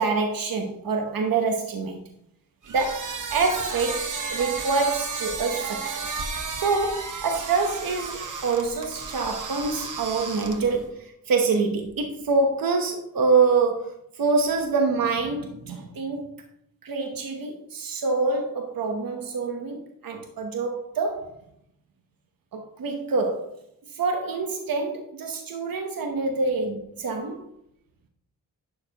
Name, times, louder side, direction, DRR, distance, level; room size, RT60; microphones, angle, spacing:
voice 1, 0.0-2.0 2.7-5.9 6.5-16.4 16.8-21.3 22.5-23.5 23.9-27.4, right 4 dB, 80° right, 1.0 m, -26 dB
sound 1, 2.6-10.8, right 4 dB, 60° right, 1.2 m, -33 dB
11.5 x 6.6 x 2.9 m
wide cardioid pair, 145°, 34 cm